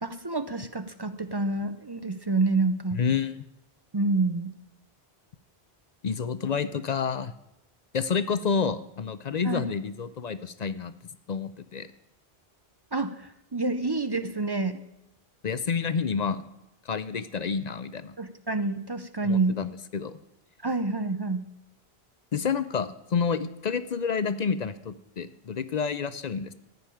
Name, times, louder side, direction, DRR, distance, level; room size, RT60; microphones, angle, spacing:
voice 1, 0.0-3.0 3.9-4.6 9.4-9.7 12.9-14.8 18.2-19.6 20.6-21.5, right 3 dB, 30° right, 10 dB, 0.5 m, -28 dB
voice 2, 3.0-3.4 6.0-7.3 7.9-10.9 11.3-11.9 15.4-16.4 16.9-18.2 19.2-20.2 22.3-26.5, left 6 dB, 50° left, 13 dB, 0.6 m, -29 dB
14.5 x 5.4 x 9.1 m, 0.89 s
omnidirectional pair, 1.0 m